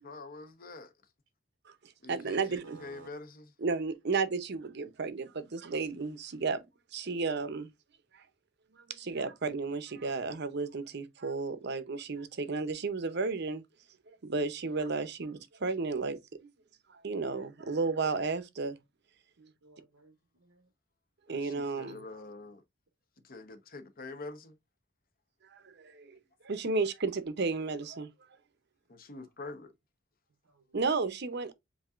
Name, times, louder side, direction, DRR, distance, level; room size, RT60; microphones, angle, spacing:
voice 1, 0.0-0.9 2.0-3.5 21.3-22.6 23.2-24.6 28.9-29.7, left 3 dB, 45° left, 0.9 m, -45 dB
voice 2, 2.1-2.8 3.6-6.6 6.9-7.7 8.1-8.2 8.8-13.6 14.2-16.5 16.9-18.8 21.3-22.1 25.5-26.2 26.4-28.1 30.7-31.5, right 4 dB, 55° right, 0.7 m, -33 dB
voice 3, 2.6-3.1 19.4-20.7 23.2-23.3 30.4-30.6, right 5 dB, 90° right, 0.9 m, -56 dB
7.3 x 2.8 x 2.4 m
head